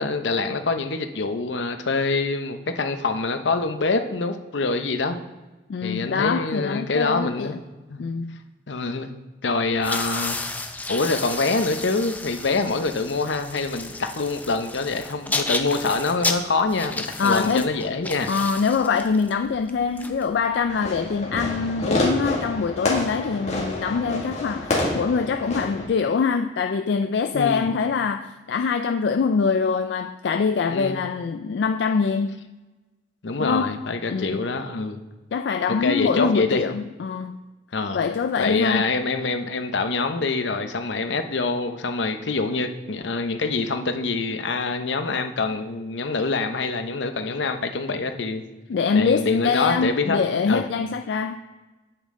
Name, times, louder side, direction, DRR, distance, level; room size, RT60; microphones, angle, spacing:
voice 1, 0.0-5.2 5.8-7.6 7.9-8.0 8.7-9.1 9.4-10.4 10.9-18.3 27.3-27.7 30.7-31.0 33.2-35.0 35.7-36.7 37.7-38.0 38.4-48.4 48.9-50.2 50.5-50.6, left 3 dB, 85° left, 0.7 m, -25 dB
voice 2, 5.7-7.6 8.0-8.4 17.2-17.7 18.3-32.4 33.4-33.8 34.1-34.4 35.3-37.4 37.9-38.9 48.7-51.4, left 5 dB, 70° left, 0.3 m, -24 dB
sound 1, 9.7-20.8, left 3 dB, 10° left, 0.5 m, -32 dB
Fireworks, 20.7-25.9, left 1 dB, 35° left, 1.9 m, -28 dB
8.8 x 8.3 x 3.7 m
head